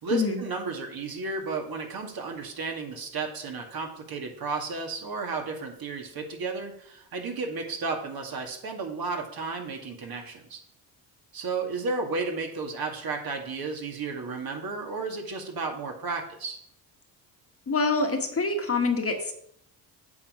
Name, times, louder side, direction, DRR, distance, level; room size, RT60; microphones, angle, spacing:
voice 1, 0.0-10.6 11.3-16.6, right 4 dB, 50° right, 2 dB, 2.2 m, -33 dB
voice 2, 17.7-19.3, left 3 dB, 30° left, 4 dB, 1.6 m, -25 dB
8.5 x 6.4 x 5.0 m, 0.70 s
supercardioid pair, 75°, 45 cm